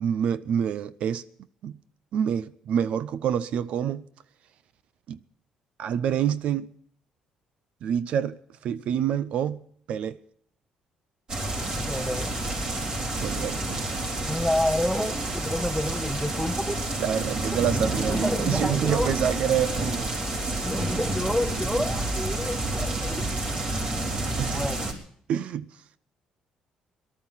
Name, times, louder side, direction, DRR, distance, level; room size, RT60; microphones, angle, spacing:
voice 1, 0.0-1.2 1.6-1.8 2.1-4.1 5.1-5.2 5.8-6.7 7.8-9.6 9.9-10.2 13.1-13.8 17.0-20.1 24.4-24.6 25.3-25.6, right 9 dB, 70° right, 0.6 m, -27 dB
sound 1, 11.3-24.9, right 2 dB, 40° right, 4.0 m, -29 dB
voice 2, 11.9-12.3 14.3-16.8 18.1-19.2 20.6-23.6 24.5-24.9, left 1 dB, ahead, 0.9 m, -29 dB
18.0 x 12.5 x 5.7 m
cardioid pair, 105°, 2 cm